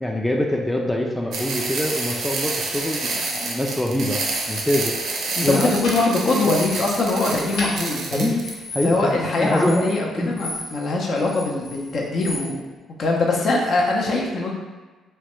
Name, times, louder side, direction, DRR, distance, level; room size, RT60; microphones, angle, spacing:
voice 1, 0.0-4.2 4.5-4.9 5.4-5.7 6.4-6.7 8.1-8.4 8.7-9.9 10.2-10.4, left 1 dB, 5° left, 0 dB, 0.3 m, -24 dB
sound 1, 1.3-8.5, right 3 dB, 70° right, 0.5 m, -28 dB
sound 2, 1.7-2.3 3.0-3.8 4.1-4.7 5.0-10.9 11.2-12.5, left 2 dB, 85° left, 1.0 m, -35 dB
voice 2, 5.4-8.4 8.8-12.6 13.0-14.5, left 2 dB, 60° left, -1 dB, 0.6 m, -22 dB
3.0 x 2.2 x 3.0 m, 1.3 s
cardioid pair, 90°, 0 cm